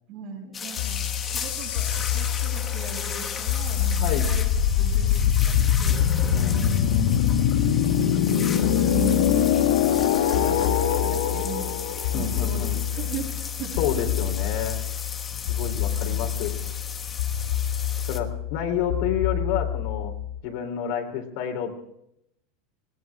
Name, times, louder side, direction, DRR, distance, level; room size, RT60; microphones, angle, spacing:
voice 1, 0.1-4.5 4.8-6.1 7.9-11.8 12.1-12.6 12.9-13.3 13.6-14.1 15.9-16.3, right 5 dB, 45° right, 0 dB, 7.0 m, -38 dB
sound 1, 0.5-18.2, left 6 dB, 20° left, 1.3 m, -36 dB
sound 2, 0.8-20.4, left 9 dB, 80° left, 1.7 m, -24 dB
voice 2, 4.0-4.3 6.3-7.5 12.1-12.8 13.8-14.8 15.5-16.5 18.1-20.1 20.4-21.7, left 8 dB, 55° left, 3 dB, 3.6 m, -30 dB
20.5 x 19.5 x 3.6 m, 0.78 s
supercardioid pair, 170°, 0 cm